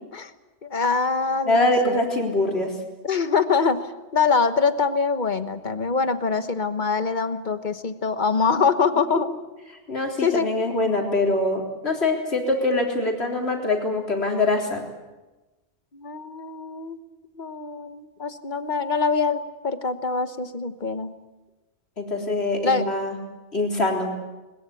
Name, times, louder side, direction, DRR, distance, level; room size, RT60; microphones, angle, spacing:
voice 1, 0.6-2.1 3.0-3.8 4.1-9.3 10.2-10.5 15.9-17.0 17.4-21.2 22.6-22.8, left 5 dB, 40° left, 10 dB, 1.3 m, -24 dB
voice 2, 1.4-2.7 9.9-14.8 22.0-23.2 23.5-24.1, left 2 dB, 60° left, 1 dB, 4.0 m, -23 dB
21.0 x 21.0 x 8.4 m, 1.1 s
omnidirectional pair, 1.2 m